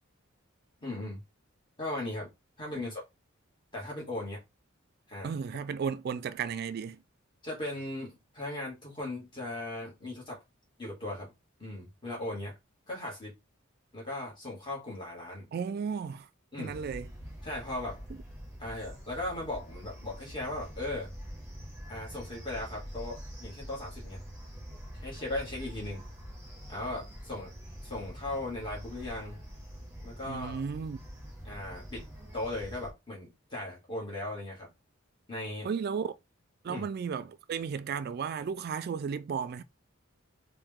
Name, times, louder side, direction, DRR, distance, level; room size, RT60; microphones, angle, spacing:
voice 1, 0.8-1.2 1.8-2.3 2.6-3.0 3.7-4.4 5.1-5.3 7.4-10.4 10.8-11.3 11.6-12.6 12.9-13.3 13.9-15.5 16.5-16.8 17.4-18.0 18.6-21.1 21.9-24.2 24.9-26.0 26.7-27.5 27.8-29.4 30.0-30.6 31.4-32.1 32.3-34.7 35.3-35.7 36.6-36.9, left 1 dB, 25° left, 2.1 m, -38 dB
voice 2, 5.2-7.0 15.5-16.3 16.6-17.1 30.3-31.0 35.6-36.1 36.6-39.6, right 6 dB, 50° right, 0.3 m, -34 dB
sound 1, 16.7-32.9, equal, 15° right, 1.4 m, -45 dB
4.7 x 2.6 x 3.6 m
head